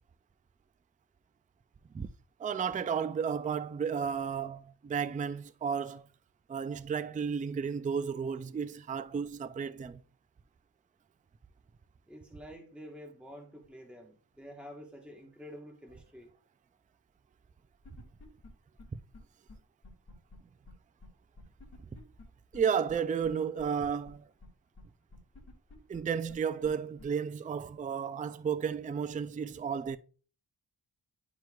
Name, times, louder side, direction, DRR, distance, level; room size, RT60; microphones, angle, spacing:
voice 1, 2.4-6.1 6.5-10.0 21.9-22.0 22.5-24.3 25.9-30.0, right 7 dB, 20° right, 0.3 m, -33 dB
voice 2, 12.1-16.3, equal, 5° right, 1.3 m, -49 dB
sound 1, 17.8-18.5 18.8-18.9 19.1-19.2 19.5-19.6 19.8-20.4 20.7-20.8 21.0-21.1 21.4-22.2 22.5-22.6 22.9-23.0 23.2-23.3 23.6-24.1 24.4-24.5 24.8-24.9 25.1-26.0 26.3-26.4 26.6-26.7 27.0-27.1, left 3 dB, 35° left, 2.3 m, -51 dB
10.5 x 4.5 x 2.4 m
wide cardioid pair, 85°, 43 cm